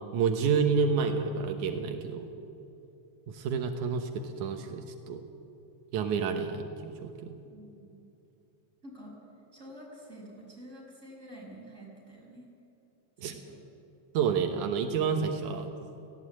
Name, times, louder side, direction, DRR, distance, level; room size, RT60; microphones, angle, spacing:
voice 1, 0.1-2.3 3.3-5.2 5.9-7.3 13.2-13.3 14.1-15.7, right 6 dB, 80° right, 5 dB, 2.6 m, -29 dB
voice 2, 7.5-7.9 8.8-9.2 9.5-12.5 13.2-13.6, equal, 20° right, -3 dB, 6.2 m, -48 dB
18.0 x 16.5 x 8.8 m, 2.8 s
omnidirectional pair, 3.4 m